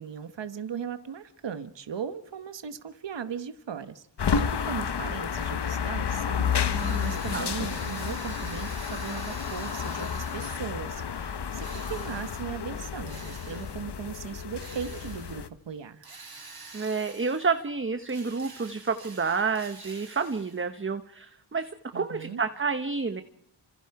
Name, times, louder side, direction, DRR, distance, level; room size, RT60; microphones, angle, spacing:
voice 1, 0.0-4.1 4.3-16.1 21.9-22.4, right 7 dB, 65° right, 10 dB, 1.2 m, -38 dB
sound 1, 4.2-15.5, left 7 dB, 60° left, 1.1 m, -31 dB
voice 2, 6.7-7.5 16.7-23.2, right 5 dB, 25° right, 10 dB, 1.0 m, -30 dB
Drill, 6.7-10.8 11.6-12.5 13.1-13.9 14.6-15.5 16.0-17.7 18.0-20.7, right 4 dB, 50° right, 4.1 m, -47 dB
28.5 x 26.0 x 4.8 m, 0.74 s
wide cardioid pair, 80°, 46 cm